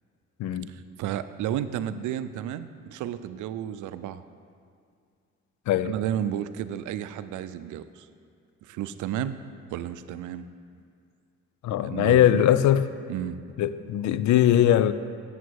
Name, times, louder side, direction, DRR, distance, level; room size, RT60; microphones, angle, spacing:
voice 1, 0.7-4.2 5.8-8.1 8.6-9.4 9.7-10.5 11.8-12.5 13.1-13.4, right 10 dB, 80° right, 13 dB, 0.5 m, -32 dB
voice 2, 11.6-12.9 13.6-14.9, left 11 dB, 70° left, 14 dB, 0.5 m, -21 dB
8.1 x 7.6 x 4.7 m, 2.3 s
cardioid pair, 90°, 30 cm